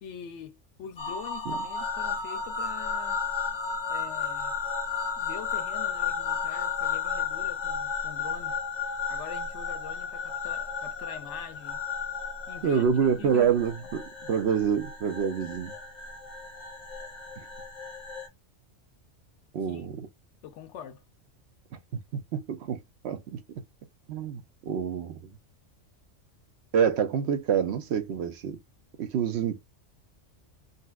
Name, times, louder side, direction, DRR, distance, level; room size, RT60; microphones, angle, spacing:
voice 1, 0.0-3.2 3.9-4.5 5.2-8.6 9.1-11.8 12.5-12.8 13.2-13.5 13.8-13.9 19.7-19.9 20.4-21.0, left 8 dB, 75° left, 0.8 m, -44 dB
sound 1, 1.0-18.3, left 6 dB, 45° left, 0.7 m, -33 dB
voice 2, 12.6-15.7 17.4-17.5 19.5-20.1 22.1-23.6 24.1-25.3 26.7-28.6 29.0-29.6, right 7 dB, 65° right, 0.8 m, -27 dB
4.0 x 2.1 x 2.3 m
omnidirectional pair, 1.3 m